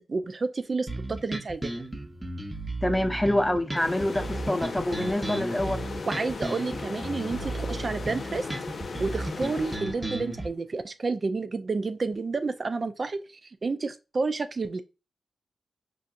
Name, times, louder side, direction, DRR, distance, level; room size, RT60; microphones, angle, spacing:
voice 1, 0.0-1.8 6.1-8.5 9.0-14.8, right 3 dB, 50° right, 0.3 m, -30 dB
sound 1, 0.9-10.5, right 2 dB, 20° right, 1.0 m, -34 dB
voice 2, 2.8-5.9, left 1 dB, 15° left, 0.6 m, -26 dB
sound 2, 3.8-10.4, left 4 dB, 60° left, 0.4 m, -37 dB
4.5 x 2.6 x 2.4 m
cardioid pair, 45°, 0 cm